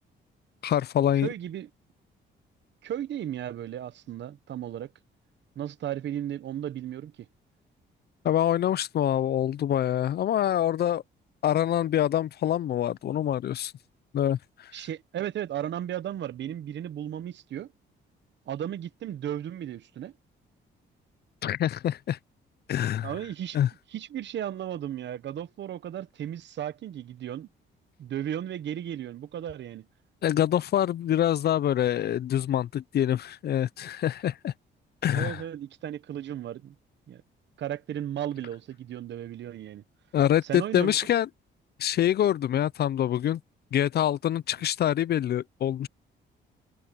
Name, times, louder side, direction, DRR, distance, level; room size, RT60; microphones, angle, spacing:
voice 1, 0.6-1.3 8.2-11.0 11.4-13.7 14.1-14.7 21.4-22.2 22.7-23.1 23.5-23.7 30.2-34.5 35.0-35.4 40.1-41.3 41.8-43.4 43.7-45.9, left 11 dB, 55° left, 0.5 m, -25 dB
voice 2, 1.2-1.7 2.8-4.9 5.6-7.1 14.7-17.7 18.5-20.1 23.0-23.6 23.9-27.5 28.0-29.9 35.1-36.7 37.1-37.2 37.6-39.8 40.4-40.9, right 11 dB, 65° right, 1.1 m, -35 dB
cardioid pair, 90°, 20 cm